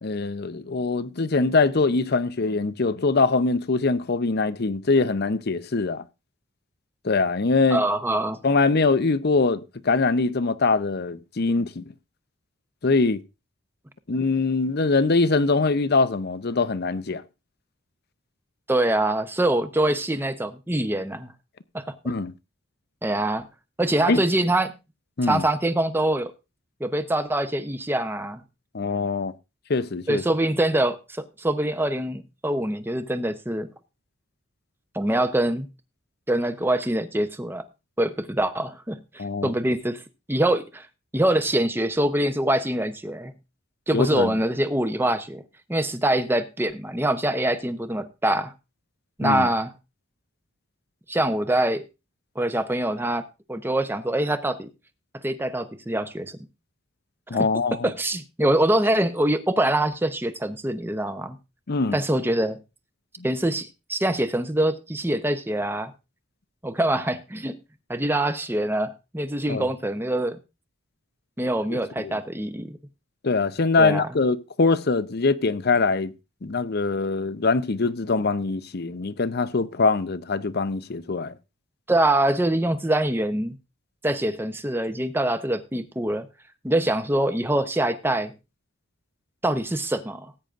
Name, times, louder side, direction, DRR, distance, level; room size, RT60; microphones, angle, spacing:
voice 1, 0.0-6.0 7.0-7.8 8.4-11.8 12.8-13.2 14.1-17.2 22.0-22.3 24.1-24.2 25.2-25.4 28.7-29.3 29.7-30.2 39.2-39.5 43.9-44.4 49.2-49.5 57.3-57.9 61.7-62.0 69.5-69.6 72.0-72.1 73.2-76.1 76.4-81.3, left 3 dB, 50° left, 0.6 m, -23 dB
voice 2, 7.7-8.4 18.7-21.3 21.7-21.8 23.0-23.5 23.8-24.7 25.2-26.3 26.8-28.4 30.1-33.7 34.9-35.7 36.3-37.7 38.0-40.0 40.3-40.9 41.1-43.3 43.9-45.4 45.7-48.5 49.2-49.7 51.1-51.8 52.4-53.2 53.5-54.7 55.2-56.4 57.8-61.4 61.9-62.6 63.2-65.9 66.6-67.6 67.9-70.4 71.4-72.8 73.8-74.1 81.9-83.6 84.0-86.3 86.6-88.3 89.4-90.3, right 1 dB, 10° right, 0.7 m, -24 dB
19.0 x 8.9 x 2.5 m
head